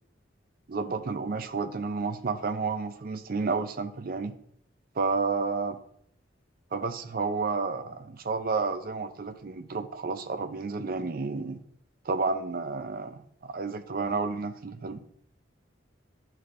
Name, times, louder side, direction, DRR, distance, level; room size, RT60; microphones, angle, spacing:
voice 1, 0.7-4.3 5.0-5.8 6.7-11.6 12.0-15.0, right 4 dB, 50° right, 9 dB, 0.5 m, -31 dB
11.0 x 4.3 x 2.5 m, 0.69 s
head